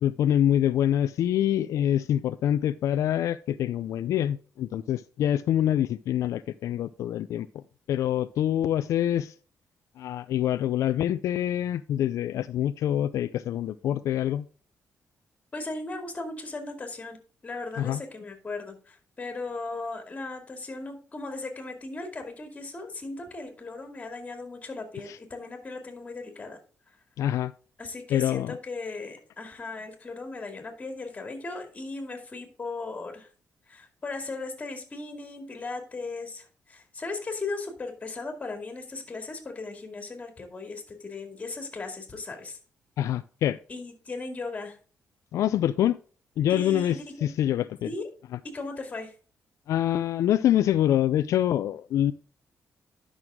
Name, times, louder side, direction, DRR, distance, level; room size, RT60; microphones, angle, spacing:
voice 1, 0.0-7.6 7.9-9.3 10.0-14.5 17.8-18.0 25.1-25.2 27.2-27.5 28.1-28.6 43.0-43.6 45.3-46.0 46.4-47.9 49.7-52.1, left 11 dB, 80° left, 13 dB, 0.4 m, -25 dB
voice 2, 15.5-26.6 27.8-33.3 33.7-42.6 43.7-44.8 46.5-47.3 47.8-48.1 48.4-49.1, left 3 dB, 25° left, 4 dB, 2.3 m, -37 dB
11.0 x 6.2 x 3.6 m, 0.40 s
cardioid pair, 130°, 5 cm